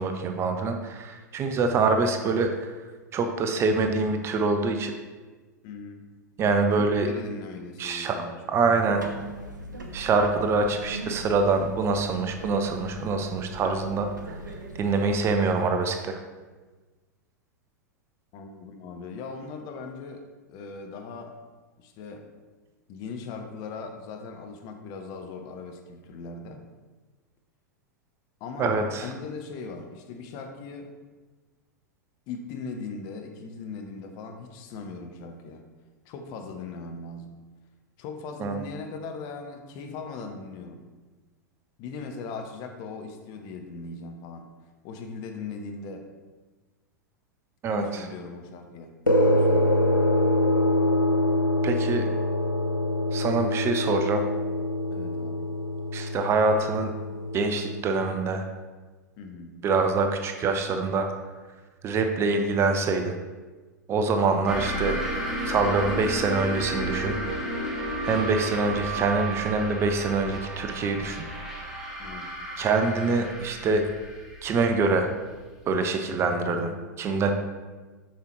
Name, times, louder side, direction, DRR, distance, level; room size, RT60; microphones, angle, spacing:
voice 1, 0.0-2.7 3.1-4.9 6.4-7.1 7.8-8.2 8.5-9.0 9.9-14.1 14.8-16.2 28.6-29.1 38.4-38.6 47.6-48.0 51.6-52.1 53.1-54.2 55.9-56.9 57.3-58.5 59.6-61.1 61.8-63.1 63.9-65.0 65.4-67.2 68.0-71.7 72.6-73.9 74.4-75.1 75.7-77.3, right 4 dB, 25° right, 6 dB, 0.6 m, -25 dB
voice 2, 5.6-6.0 6.8-8.8 18.3-21.4 21.8-22.3 22.9-26.6 28.4-30.9 32.3-35.6 36.0-37.3 38.0-40.8 41.8-44.5 44.8-46.1 47.7-48.9 49.2-49.8 54.9-55.5 59.2-59.6 64.3-64.5 72.0-72.3, left 4 dB, 40° left, 5 dB, 0.8 m, -39 dB
sound 1, 8.9-15.3, right 1 dB, 75° right, 0.8 m, -40 dB
sound 2, 49.1-57.8, left 1 dB, 90° left, 0.5 m, -25 dB
sound 3, 64.5-75.7, right 1 dB, 5° right, 1.3 m, -32 dB
7.2 x 5.8 x 3.1 m, 1.3 s
figure-of-eight pair, 95°, 10 cm